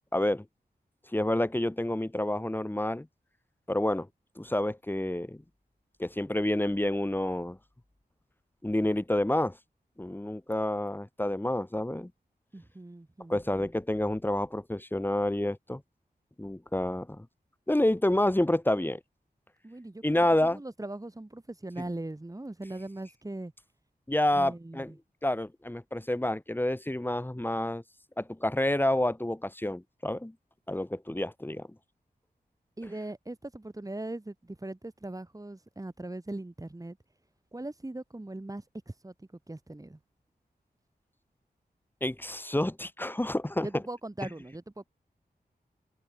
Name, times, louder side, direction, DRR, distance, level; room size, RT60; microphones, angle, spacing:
voice 1, 0.1-0.4 1.1-3.1 3.7-4.1 4.4-5.4 6.0-7.6 8.6-9.6 10.0-12.1 13.3-15.8 16.4-17.3 17.7-19.0 20.0-20.6 24.1-24.9 25.2-27.8 28.2-30.3 30.7-31.7 42.0-43.7 44.2-44.3, left 1 dB, 10° left, 2.2 m, -28 dB
voice 2, 12.5-13.4 19.6-20.0 20.4-23.5 24.3-25.0 32.8-37.0 37.5-40.0 43.6-44.9, right 2 dB, 20° right, 6.5 m, -40 dB
open air
wide cardioid pair, 95°, 16 cm